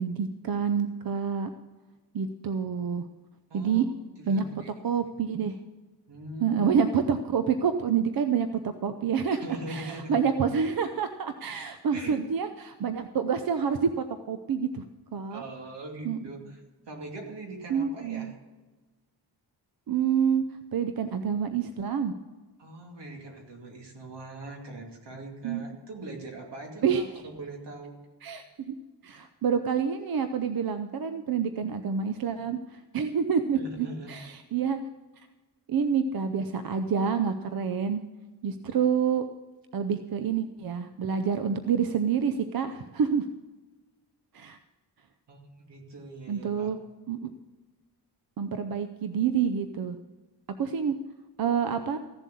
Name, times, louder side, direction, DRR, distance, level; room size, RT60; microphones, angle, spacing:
voice 1, 0.0-1.5 2.1-3.0 3.5-3.9 4.3-4.4 4.8-5.6 6.4-9.4 9.7-14.8 15.1-15.4 16.0-16.2 17.7-18.3 19.9-20.4 20.7-22.1 25.4-25.6 26.8-27.0 28.2-28.7 29.0-34.8 35.7-38.0 38.4-39.2 39.7-43.3 44.3-44.6 46.3-46.8 47.1-47.2 48.4-50.0 50.6-50.9 51.4-52.0, right 7 dB, 60° right, 9 dB, 0.7 m, -27 dB
voice 2, 3.5-3.8 4.2-4.7 6.1-6.7 9.3-10.2 11.9-12.2 15.3-16.6 16.9-18.3 22.6-28.0 33.5-34.1 45.3-46.7, right 2 dB, 80° right, 1 dB, 2.6 m, -41 dB
15.0 x 7.4 x 6.9 m, 1.2 s
wide cardioid pair, 160°, 41 cm